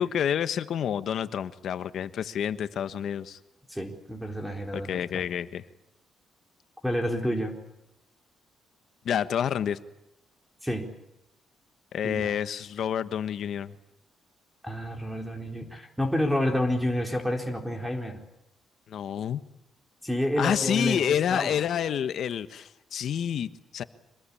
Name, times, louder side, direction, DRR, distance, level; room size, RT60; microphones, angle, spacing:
voice 1, 0.0-3.4 4.7-5.6 9.0-9.8 11.9-13.8 18.9-19.4 20.4-23.8, left 9 dB, 65° left, 12 dB, 1.3 m, -28 dB
voice 2, 3.7-5.2 6.8-7.6 10.6-10.9 12.0-12.3 14.6-18.2 20.0-21.5, left 1 dB, 5° right, 3 dB, 4.1 m, -29 dB
26.0 x 21.0 x 8.6 m, 0.88 s
cardioid pair, 90°, 0 cm